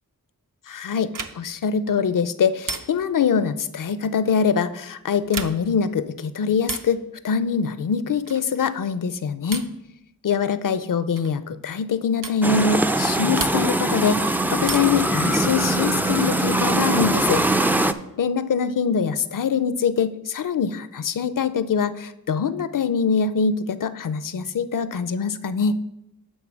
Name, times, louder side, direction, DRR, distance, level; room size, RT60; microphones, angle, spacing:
voice 1, 0.7-9.7 10.2-17.4 18.2-25.8, left 6 dB, 60° left, 14 dB, 0.5 m, -23 dB
sound 1, 1.1-1.6 2.6-3.2 5.2-5.8 6.6-7.0 8.3-8.6 9.5-9.9 11.2-11.4 12.2-12.5 13.4-13.9 14.6-15.1 16.6-17.3, right 4 dB, 60° right, 0.7 m, -34 dB
sound 2, 12.4-17.9, right 1 dB, 5° right, 0.3 m, -22 dB
9.2 x 3.8 x 6.3 m, 0.86 s
wide cardioid pair, 55°, 36 cm